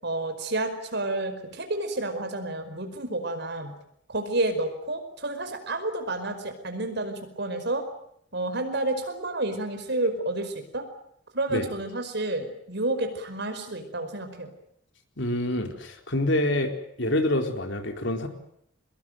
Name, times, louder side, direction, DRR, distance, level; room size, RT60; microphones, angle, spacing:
voice 1, 0.0-3.7 4.1-7.8 8.3-10.8 11.3-14.5, right 2 dB, 60° right, 7 dB, 5.1 m, -30 dB
voice 2, 15.2-16.7 17.0-18.3, left 1 dB, 65° left, 5 dB, 4.1 m, -26 dB
24.5 x 22.0 x 9.2 m, 0.71 s
head